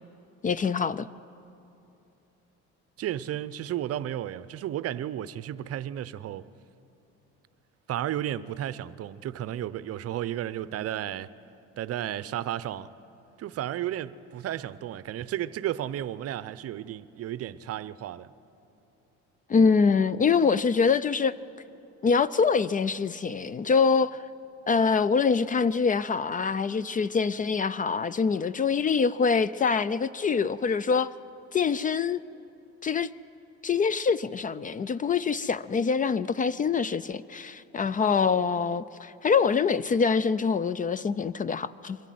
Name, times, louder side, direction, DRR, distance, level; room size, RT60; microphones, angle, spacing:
voice 1, 0.4-1.1 19.5-21.3 22.0-24.2 24.7-31.1 31.5-32.2 32.8-33.1 33.6-42.0, left 5 dB, 30° left, 0.4 m, -24 dB
voice 2, 3.0-6.5 7.9-11.3 11.8-12.9 13.4-18.3, right 11 dB, 55° right, 0.7 m, -33 dB
23.5 x 13.0 x 9.3 m
cardioid pair, 100°, 30 cm